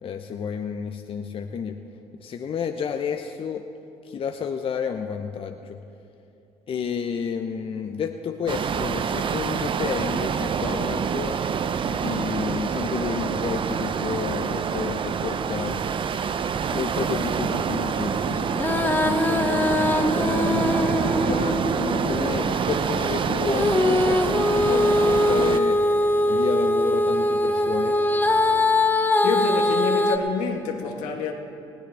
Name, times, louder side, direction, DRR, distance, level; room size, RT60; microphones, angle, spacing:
voice 1, 0.0-1.8 2.2-3.7 4.0-5.8 6.7-11.4 11.9-15.8 16.7-20.9 21.2-25.8 26.2-28.0, left 6 dB, 50° left, 0.8 m, -31 dB
sound 1, 8.5-25.6, right 7 dB, 45° right, 0.6 m, -26 dB
Female singing, 18.5-22.3 23.5-30.2, left 1 dB, 15° left, 1.1 m, -22 dB
sound 2, 19.3-28.6, left 3 dB, 65° left, 2.1 m, -41 dB
voice 2, 29.2-31.3, left 5 dB, 80° left, 1.4 m, -28 dB
20.5 x 15.5 x 3.5 m
supercardioid pair, 65°, 12 cm